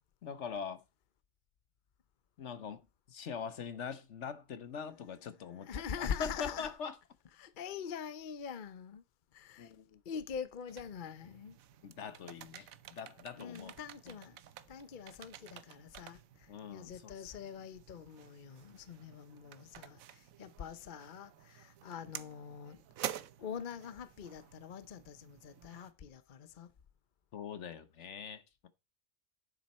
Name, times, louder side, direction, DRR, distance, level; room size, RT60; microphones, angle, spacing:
voice 1, 0.2-0.8 2.4-7.0 9.6-10.0 11.8-13.8 14.1-14.2 16.5-17.1 27.3-28.7, left 6 dB, 60° left, 1.2 m, -43 dB
voice 2, 5.4-6.7 7.4-9.0 9.3-9.7 10.0-11.6 13.4-14.4 14.7-22.8 23.4-26.7, left 7 dB, 45° left, 0.8 m, -44 dB
sound 1, 10.7-25.9, right 11 dB, 90° right, 1.1 m, -50 dB
9.7 x 7.3 x 4.2 m
omnidirectional pair, 1.4 m